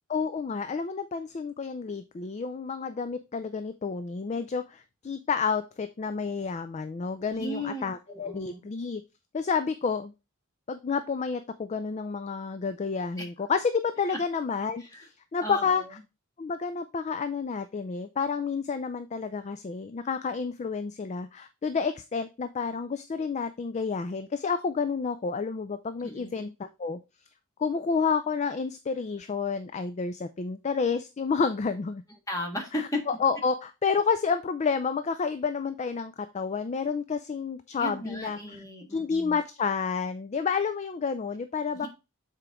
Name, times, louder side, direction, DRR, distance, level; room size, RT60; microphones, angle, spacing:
voice 1, 0.1-9.0 9.3-10.1 10.7-15.8 16.4-27.0 27.6-32.0 33.1-38.4 38.9-41.9, left 5 dB, 30° left, 11 dB, 0.3 m, -30 dB
voice 2, 7.3-8.6 13.2-13.3 14.1-14.2 14.8-15.1 15.4-16.0 26.0-26.5 32.3-33.0 37.8-39.4 41.7-41.9, left 1 dB, 15° left, 1 dB, 1.5 m, -36 dB
6.9 x 4.4 x 3.5 m, 0.27 s
head